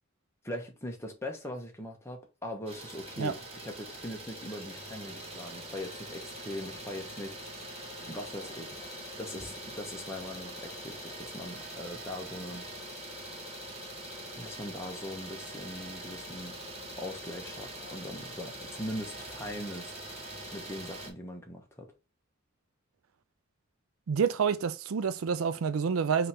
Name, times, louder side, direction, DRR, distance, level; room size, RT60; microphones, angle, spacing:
voice 1, 0.4-7.4 8.1-8.8 9.2-12.7 14.4-16.6 17.0-19.9 20.5-21.9, left 1 dB, 15° left, 1.1 m, -41 dB
Idling, 2.7-21.1, right 1 dB, 30° right, 1.0 m, -43 dB
voice 2, 24.1-26.3, right 6 dB, 90° right, 0.5 m, -28 dB
5.2 x 2.9 x 3.4 m
head